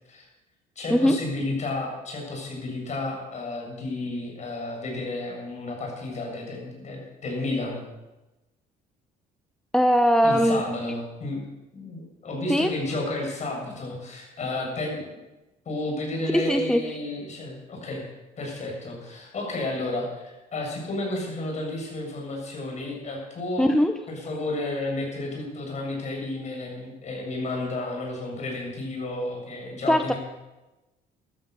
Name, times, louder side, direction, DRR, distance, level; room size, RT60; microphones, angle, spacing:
voice 1, 0.8-7.8 10.2-11.4 11.7-15.2 15.7-18.0 18.4-23.7 24.1-30.2, left 2 dB, 45° left, 0 dB, 7.6 m, -32 dB
voice 2, 9.7-10.6 12.5-12.7 16.3-17.0 23.6-24.0 29.9-30.1, equal, 5° left, 7 dB, 0.8 m, -20 dB
15.0 x 13.0 x 6.9 m, 1.1 s
cardioid pair, 110°, 17 cm